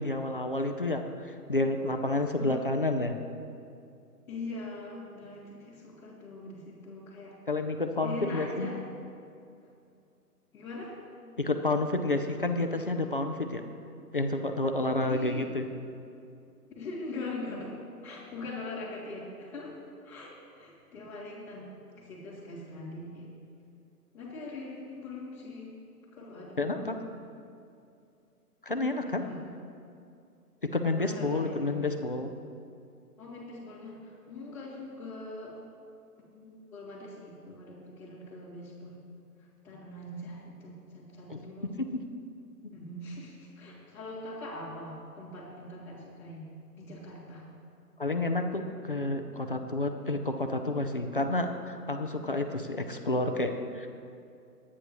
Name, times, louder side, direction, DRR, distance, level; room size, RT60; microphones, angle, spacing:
voice 1, 0.0-3.2 7.5-8.7 11.4-13.6 14.1-15.7 26.6-27.0 28.6-29.3 30.6-32.3 41.3-41.4 41.8-42.0 48.0-53.9, left 2 dB, 35° left, 5 dB, 0.5 m, -30 dB
voice 2, 4.3-7.3 8.0-8.8 9.6-9.7 10.5-11.0 15.0-15.4 16.8-17.8 18.0-19.8 20.0-21.7 22.0-23.3 24.1-25.8 26.1-27.0 29.1-29.4 30.9-31.6 33.2-35.6 36.3-39.0 39.6-41.7 42.7-46.4 46.8-47.5, left 2 dB, 5° left, -12 dB, 1.8 m, -42 dB
22.0 x 9.8 x 3.0 m, 2.5 s
hypercardioid pair, 175°, 47 cm